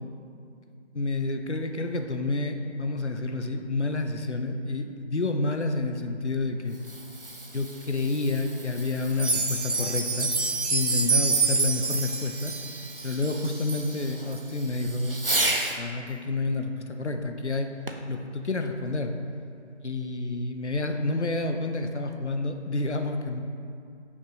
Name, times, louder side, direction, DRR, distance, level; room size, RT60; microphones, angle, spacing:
voice 1, 0.9-6.8 7.5-10.3 10.7-12.5 13.0-17.7 18.1-19.1 19.8-23.4, left 2 dB, 70° left, 6 dB, 0.8 m, -29 dB
Fireworks, 6.6-15.8 17.9-18.2 18.9-19.0, right 2 dB, 50° right, 0.7 m, -35 dB
sound 1, 9.1-13.9 14.3-14.4 14.9-15.0 15.5-15.6, right 4 dB, 75° right, 1.1 m, -27 dB
7.7 x 6.1 x 3.9 m, 2.4 s
figure-of-eight pair, 170°, 35 cm